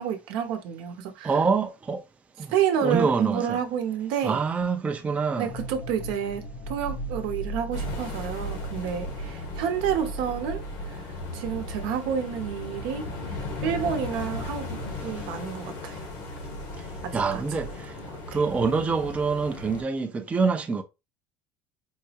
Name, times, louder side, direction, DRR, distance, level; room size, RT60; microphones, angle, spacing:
voice 1, 0.0-1.4 2.5-4.4 5.3-11.1 11.3-16.0 17.0-17.6 18.0-18.4, right 8 dB, 75° right, 0.8 m, -30 dB
voice 2, 1.2-2.0 2.4-2.5 2.8-3.6 4.2-5.5 17.1-17.9 18.3-20.8, right 5 dB, 15° right, 0.4 m, -25 dB
sound 1, 5.5-17.8, right 1 dB, 60° left, 0.5 m, -39 dB
sound 2, 7.7-19.8, left 2 dB, 85° left, 1.2 m, -37 dB
4.6 x 2.0 x 2.8 m
cardioid pair, 125°, 8 cm